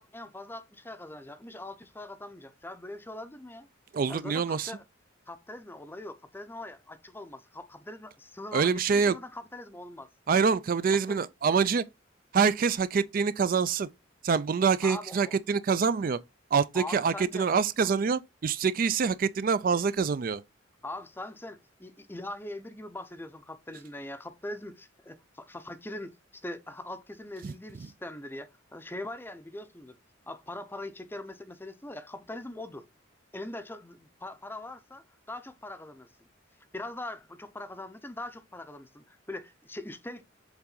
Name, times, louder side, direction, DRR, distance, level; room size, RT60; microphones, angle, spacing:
voice 1, 0.0-3.7 4.1-4.8 5.3-10.1 11.1-11.2 14.8-15.4 16.7-17.5 17.8-17.9 19.8-19.9 20.8-30.0 30.3-32.9 33.3-36.1 36.7-40.2, left 1 dB, 10° left, 0.6 m, -42 dB
voice 2, 3.9-4.7 8.5-9.2 10.3-11.8 12.3-13.9 14.2-16.2 16.5-20.4 27.4-27.5, right 5 dB, 45° right, 0.4 m, -25 dB
7.1 x 3.7 x 3.9 m
head